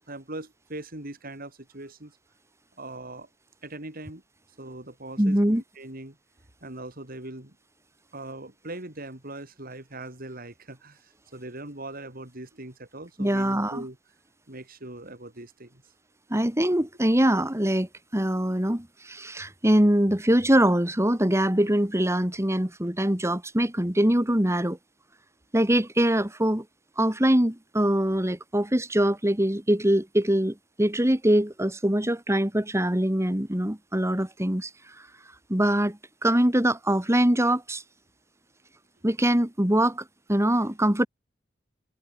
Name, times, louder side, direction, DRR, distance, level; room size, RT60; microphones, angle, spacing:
voice 1, 0.1-2.2 2.8-3.3 3.6-4.2 4.6-6.2 6.6-7.6 8.1-14.0 14.5-15.8, right 2 dB, 50° right, 3.9 m, -40 dB
voice 2, 5.2-5.6 13.2-13.8 16.3-24.8 25.5-26.6 27.0-35.1 35.5-37.8 39.0-41.1, right 1 dB, 15° right, 2.3 m, -23 dB
head